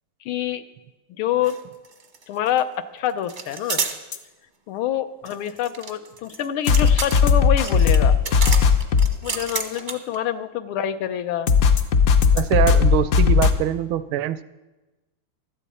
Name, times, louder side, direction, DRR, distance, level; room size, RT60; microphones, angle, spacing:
voice 1, 0.2-0.6 1.2-1.6 2.3-2.7 2.9-3.8 4.7-8.1 9.2-11.5, left 10 dB, 80° left, 10 dB, 1.6 m, -26 dB
sound 1, 1.4-1.6 1.8-2.6 3.3-4.0 5.2-10.2, right 4 dB, 45° right, 0.6 m, -30 dB
sound 2, 4.1-4.2 6.7-9.1 11.5-13.5, left 6 dB, 60° left, 1.0 m, -16 dB
voice 2, 12.3-14.4, right 11 dB, 80° right, 14 dB, 1.3 m, -23 dB
15.5 x 12.5 x 4.2 m, 1.1 s
omnidirectional pair, 2.3 m